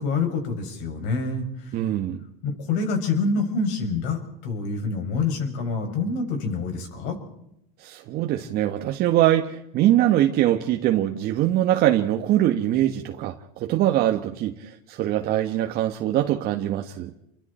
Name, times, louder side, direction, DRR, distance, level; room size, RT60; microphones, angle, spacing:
voice 1, 0.0-1.8 2.4-7.2, left 4 dB, 60° left, 6.9 m, -26 dB
voice 2, 1.7-2.2 7.8-17.1, right 13 dB, 50° right, 1.6 m, -23 dB
29.5 x 23.0 x 4.5 m
supercardioid pair, 105°, 20 cm